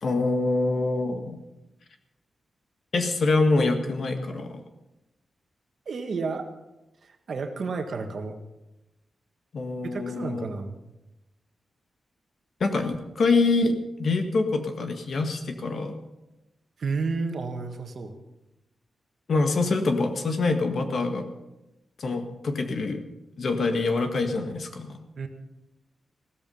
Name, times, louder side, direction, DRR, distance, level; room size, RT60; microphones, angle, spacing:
voice 1, 0.0-1.4 2.9-4.6 9.5-10.4 12.6-15.9 19.3-21.3 22.0-23.0 23.4-25.0, left 3 dB, 50° left, 6 dB, 1.7 m, -25 dB
voice 2, 5.8-6.5 7.0-8.4 9.8-10.8 16.8-18.1 25.1-25.3, right 4 dB, 50° right, 5 dB, 1.6 m, -31 dB
16.5 x 13.5 x 5.5 m, 0.95 s
wide cardioid pair, 180°, 0 cm